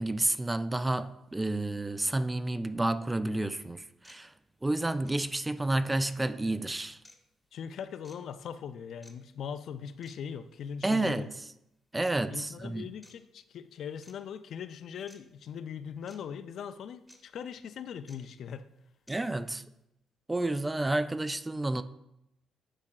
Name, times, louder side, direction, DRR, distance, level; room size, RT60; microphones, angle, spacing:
voice 1, 0.0-4.3 4.6-7.0 10.8-11.3 11.9-12.9 19.1-19.6 20.3-21.8, right 2 dB, 15° right, 0.3 m, -30 dB
sound 1, 3.3-3.4 4.0-4.2 5.0-5.2 6.0-6.2 7.0-7.2 8.0-8.2 9.0-9.1 10.0-10.2 11.0-11.1 12.0-12.1 13.0-13.2 14.0-14.1 15.1-15.2 16.1-16.2 17.1-17.2 18.1-18.2 19.1-19.2, left 1 dB, 5° left, 0.9 m, -55 dB
voice 2, 7.5-11.3 12.3-18.7, left 7 dB, 70° left, 0.3 m, -40 dB
9.8 x 4.7 x 2.3 m
cardioid pair, 90°, 0 cm